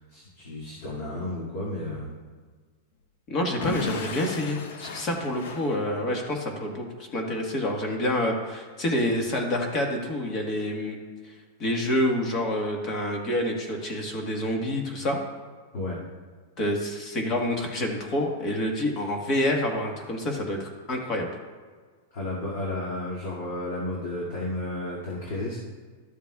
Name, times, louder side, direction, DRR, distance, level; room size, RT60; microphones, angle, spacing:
voice 1, 0.0-2.1 15.7-16.1 22.1-25.6, left 1 dB, 55° left, -6 dB, 2.3 m, -32 dB
voice 2, 3.3-6.8 7.1-11.0 11.2-11.3 11.6-15.2 16.6-21.3, left 1 dB, 30° left, 2 dB, 1.5 m, -27 dB
Explosion / Shatter, 3.6-6.4, left 5 dB, 70° left, 0.9 m, -36 dB
13.0 x 7.2 x 2.4 m, 1.5 s
supercardioid pair, 155°, 0 cm